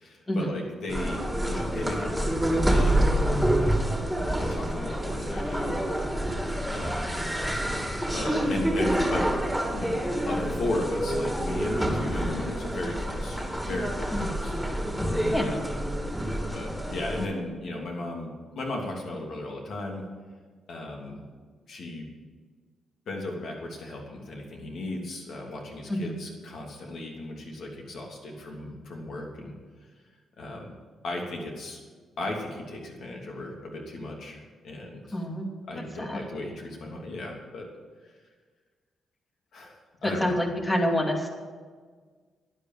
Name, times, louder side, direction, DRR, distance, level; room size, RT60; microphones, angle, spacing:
voice 1, 0.0-3.0 3.6-3.8 4.4-6.0 6.7-7.1 8.1-9.3 9.7-10.0 10.3-14.6 15.4-15.7 16.5-20.0 20.7-21.2 21.7-22.1 23.1-29.5 30.4-30.7 31.0-31.8 32.2-35.2 35.6-37.7 38.0-38.1 39.5-40.4, left 2 dB, 70° left, 0 dB, 2.9 m, -36 dB
sound 1, 0.9-17.3, right 1 dB, ahead, 2.4 m, -27 dB
voice 2, 35.1-35.5 36.0-36.2 40.0-41.3, equal, 20° left, 2 dB, 2.4 m, -27 dB
12.0 x 10.0 x 7.7 m, 1.5 s
cardioid pair, 90°, 0 cm